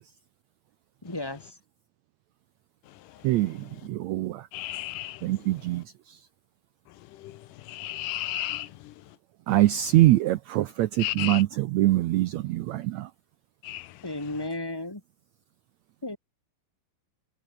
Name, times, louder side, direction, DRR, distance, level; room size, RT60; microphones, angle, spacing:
voice 1, 1.0-1.5 14.0-15.0 16.0-16.2, left 2 dB, 10° left, 1.9 m, -34 dB
voice 2, 3.2-3.6 3.9-4.4 5.2-5.8 9.5-13.1, right 16 dB, 75° right, 1.6 m, -23 dB
voice 3, 4.5-5.1 7.7-8.7 11.0-11.4 13.7-13.8, left 15 dB, 80° left, 2.4 m, -32 dB
omnidirectional pair, 3.9 m